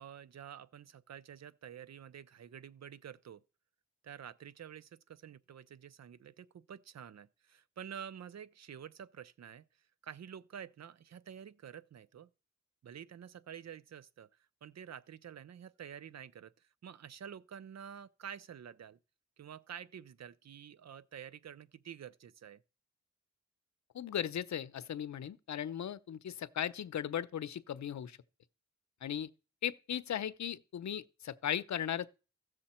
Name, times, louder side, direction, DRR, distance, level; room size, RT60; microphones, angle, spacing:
voice 1, 0.0-3.4 4.0-9.6 10.0-12.3 12.8-14.3 14.6-19.0 19.4-22.6, right 8 dB, 65° right, 0.6 m, -49 dB
voice 2, 23.9-28.2 29.0-29.3 29.6-32.1, left 9 dB, 70° left, 0.7 m, -37 dB
15.5 x 6.5 x 4.3 m
wide cardioid pair, 105°, 29 cm